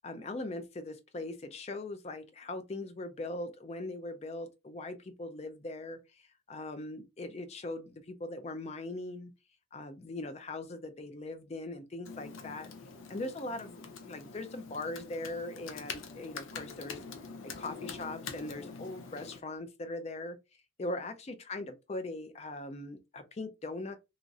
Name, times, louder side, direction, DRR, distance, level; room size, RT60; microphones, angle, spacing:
voice 1, 0.0-9.3 9.7-12.7 13.1-17.0 17.4-20.4 20.8-24.0, left 2 dB, 30° left, 0.4 m, -40 dB
Computer keyboard, 12.0-19.4, left 5 dB, 85° left, 0.5 m, -45 dB
3.0 x 2.4 x 2.6 m
head